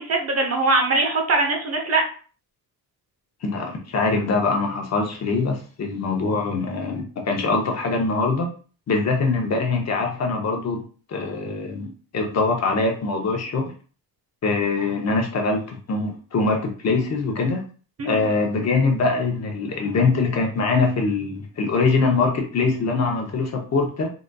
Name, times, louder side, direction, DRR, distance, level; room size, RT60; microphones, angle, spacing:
voice 1, 0.0-2.0 18.0-18.2, right 3 dB, 40° right, 2 dB, 0.7 m, -21 dB
voice 2, 3.4-8.5 8.9-10.8 11.1-11.9 12.1-13.7 14.4-17.6 18.0-24.1, left 3 dB, 45° left, 2 dB, 0.6 m, -23 dB
3.8 x 2.5 x 2.2 m, 0.39 s
wide cardioid pair, 165°, 38 cm